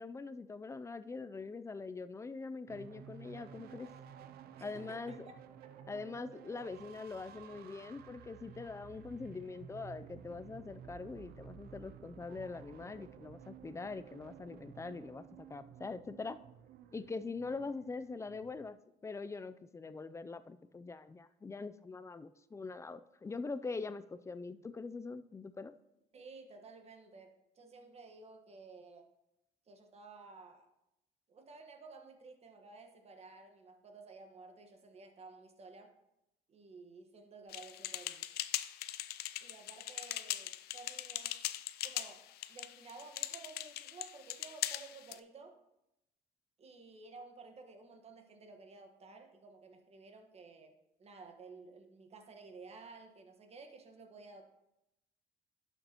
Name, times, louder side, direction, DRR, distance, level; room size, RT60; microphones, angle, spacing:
voice 1, 0.0-3.9 4.6-5.1 5.9-16.4 16.9-25.7, left 4 dB, 15° left, 13 dB, 0.4 m, -43 dB
sound 1, 2.7-18.7, right 8 dB, 65° right, 0.5 m, -54 dB
voice 2, 4.6-5.9 6.8-7.0 26.1-29.1 29.7-30.7 31.3-35.9 36.5-38.3 39.4-41.4 41.8-45.6 46.6-54.4, right 4 dB, 40° right, 5 dB, 1.4 m, -54 dB
sound 2, 37.5-45.2, left 14 dB, 70° left, 0.5 m, -40 dB
11.5 x 6.7 x 3.0 m, 0.88 s
cardioid pair, 110°, 17 cm